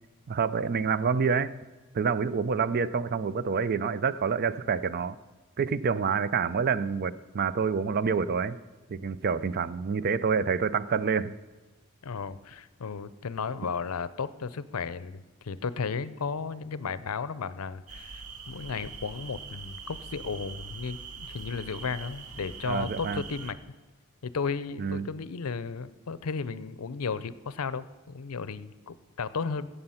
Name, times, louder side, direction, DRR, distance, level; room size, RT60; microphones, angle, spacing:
voice 1, 0.3-1.5 1.9-5.2 5.6-8.6 8.9-11.3 22.7-23.2 24.8-25.1, right 6 dB, 45° right, 16 dB, 0.4 m, -27 dB
voice 2, 12.0-23.6 24.2-29.7, left 5 dB, 75° left, 16 dB, 0.6 m, -34 dB
sound of the night, 17.9-23.5, right 5 dB, 90° right, 0.9 m, -43 dB
16.5 x 6.8 x 5.7 m, 1.2 s
head